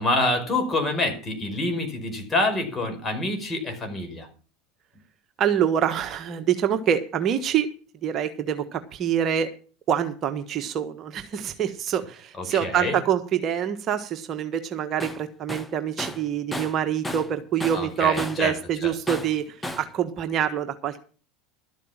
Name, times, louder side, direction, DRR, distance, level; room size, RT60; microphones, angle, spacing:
voice 1, 0.0-4.3 12.4-13.0 17.7-18.5 18.8-18.9, left 2 dB, 25° left, 5 dB, 5.2 m, -26 dB
voice 2, 5.4-7.7 8.0-9.5 9.9-21.0, right 9 dB, 40° right, 8 dB, 1.3 m, -26 dB
Tools, 15.0-15.2 15.5-17.3 17.6-18.5 19.1-19.9, left 1 dB, 10° left, 1.2 m, -34 dB
12.5 x 8.3 x 7.3 m, 0.38 s
hypercardioid pair, 90°, 0 cm